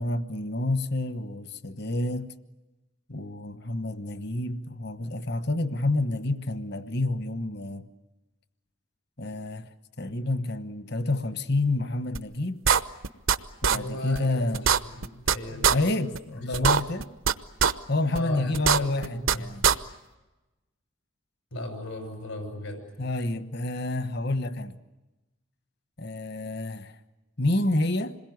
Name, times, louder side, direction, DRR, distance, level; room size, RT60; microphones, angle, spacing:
voice 1, 0.0-2.3 3.1-7.9 9.2-9.7 10.0-12.6 13.6-14.6 15.5-17.1 17.9-19.6 23.0-24.8 26.0-26.9 27.4-28.2, left 2 dB, 55° left, 1.2 m, -29 dB
sound 1, 12.1-12.2 12.6-13.4 13.6-13.8 14.1-14.2 14.5-15.3 15.6-15.7 16.1-16.2 16.5-17.3 17.6-17.7 18.1-18.2 18.5-19.3 19.6-19.7, right 7 dB, 80° right, 0.9 m, -21 dB
voice 2, 13.7-15.8 16.3-16.7 18.1-19.6 21.5-22.8, left 1 dB, 90° left, 6.5 m, -36 dB
27.0 x 21.5 x 9.5 m
head